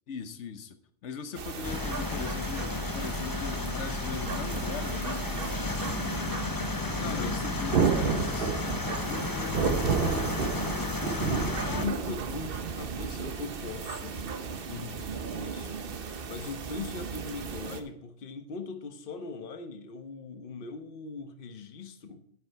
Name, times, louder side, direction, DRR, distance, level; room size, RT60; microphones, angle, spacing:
voice 1, 0.1-6.3 7.0-8.6 14.7-15.1, left 6 dB, 85° left, 11 dB, 1.2 m, -40 dB
sound 1, 1.3-17.8, right 5 dB, 55° right, 1.1 m, -33 dB
sound 2, 1.6-11.9, left 3 dB, 25° left, 0.5 m, -33 dB
voice 2, 7.0-7.4 9.0-10.0 11.1-14.2 15.3-15.8 16.3-22.2, left 4 dB, 55° left, 8 dB, 1.1 m, -40 dB
9.9 x 8.2 x 4.6 m, 0.69 s
omnidirectional pair, 1.2 m